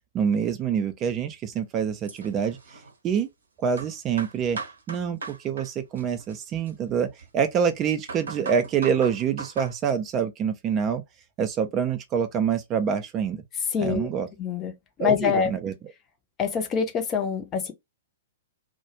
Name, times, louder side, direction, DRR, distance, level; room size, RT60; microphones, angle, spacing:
voice 1, 0.1-3.3 3.6-4.6 4.9-7.1 7.3-11.0 11.4-13.4 13.8-14.3 15.0-15.7, right 7 dB, 25° right, 0.4 m, -26 dB
sound 1, 2.0-3.2 3.8-5.7 6.0-7.4 7.9-9.7, right 4 dB, 65° right, 0.7 m, -38 dB
voice 2, 13.7-14.1 14.4-14.7 15.0-15.5 16.4-17.7, left 7 dB, 25° left, 0.6 m, -25 dB
2.3 x 2.1 x 2.8 m
figure-of-eight pair, 110°, 0 cm